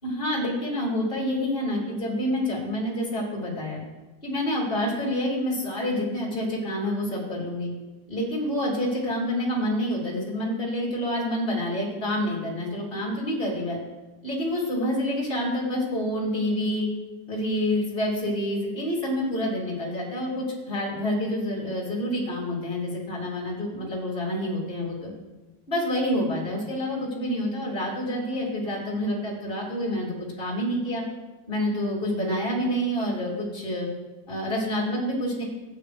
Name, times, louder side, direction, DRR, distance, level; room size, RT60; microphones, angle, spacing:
voice 1, 0.0-3.8 4.2-7.7 8.1-13.8 14.2-16.9 17.3-25.1 25.7-31.0 31.5-33.9 34.3-35.4, left 1 dB, 15° left, -5 dB, 2.1 m, -28 dB
15.5 x 10.0 x 3.4 m, 1.2 s
omnidirectional pair, 5.1 m